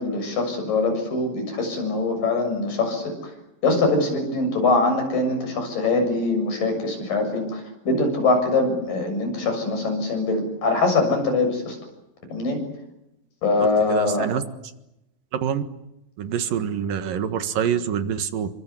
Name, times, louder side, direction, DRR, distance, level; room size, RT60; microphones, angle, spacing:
voice 1, 0.0-3.1 3.6-11.8 12.3-12.6 13.4-14.3, left 3 dB, 75° left, 5 dB, 8.7 m, -23 dB
voice 2, 13.6-14.4 15.4-15.6 16.2-18.5, right 8 dB, 80° right, 10 dB, 3.3 m, -26 dB
29.5 x 24.0 x 8.4 m, 0.89 s
omnidirectional pair, 3.9 m